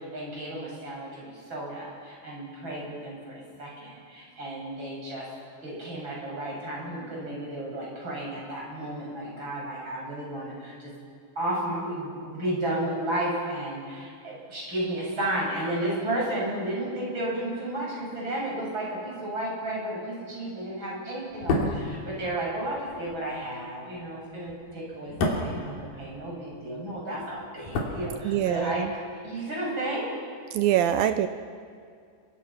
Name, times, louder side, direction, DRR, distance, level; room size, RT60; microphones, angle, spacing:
voice 1, 0.0-5.2 5.6-10.9 11.4-28.8 29.2-30.1, right 1 dB, 25° right, -4 dB, 8.1 m, -33 dB
sound 1, 21.3-26.6 26.9-28.7 29.0-29.1, left 2 dB, 55° left, 4.3 m, -32 dB
voice 2, 28.2-28.9 30.5-31.3, right 11 dB, 80° right, 9 dB, 2.1 m, -24 dB
29.5 x 24.0 x 6.0 m, 2.2 s
omnidirectional pair, 5.1 m